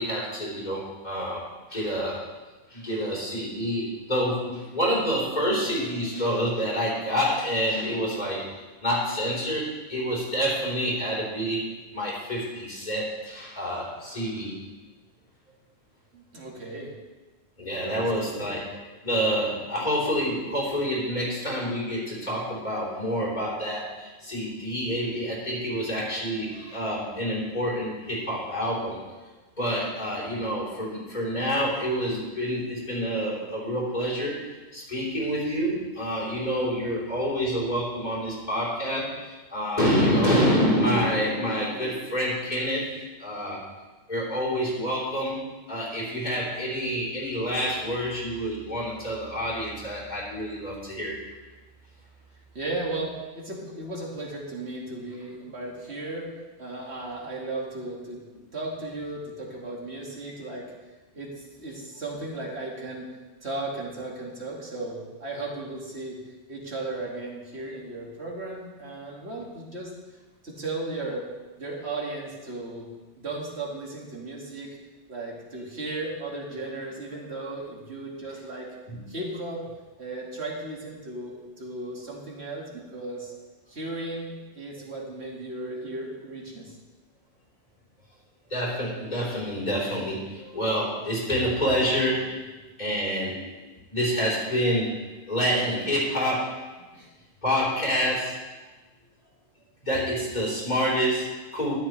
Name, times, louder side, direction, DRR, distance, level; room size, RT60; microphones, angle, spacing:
voice 1, 0.0-1.4 1.7-2.2 2.7-8.4 8.8-11.6 11.9-14.5 17.6-18.6 19.0-29.0 29.6-34.3 34.7-42.9 43.2-43.6 44.1-45.4 45.7-51.2 78.9-79.0 88.5-92.5 92.8-93.4 93.9-95.0 95.3-96.6 97.4-98.4 99.8-101.7, equal, 40° left, -6 dB, 3.8 m, -27 dB
voice 2, 16.1-16.9 17.8-18.5 52.5-56.3 56.6-58.2 58.5-60.7 61.1-63.1 63.4-66.2 66.5-69.9 70.4-71.3 71.6-72.9 73.2-74.7 75.1-78.7 79.1-79.6 80.0-83.3 83.7-86.8 96.8-97.1, right 2 dB, 75° right, -2 dB, 2.4 m, -35 dB
12.5 x 11.5 x 3.2 m, 1.2 s
omnidirectional pair, 1.1 m